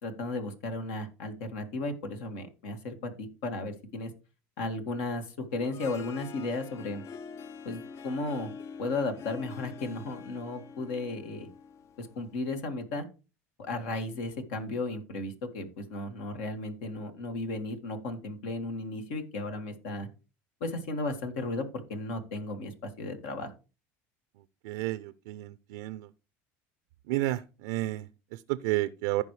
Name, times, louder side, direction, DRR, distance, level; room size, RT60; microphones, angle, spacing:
voice 1, 0.0-4.1 4.6-5.3 5.5-7.0 7.7-8.5 8.8-11.5 12.0-13.0 13.6-20.1 20.6-23.5, left 2 dB, 75° left, 6 dB, 2.0 m, -35 dB
Harp, 5.5-12.6, left 6 dB, 45° left, 0.6 m, -46 dB
voice 2, 24.6-26.1 27.1-29.2, right 17 dB, 80° right, 14 dB, 0.5 m, -31 dB
14.5 x 5.4 x 3.2 m, 0.31 s
supercardioid pair, 95°, 7 cm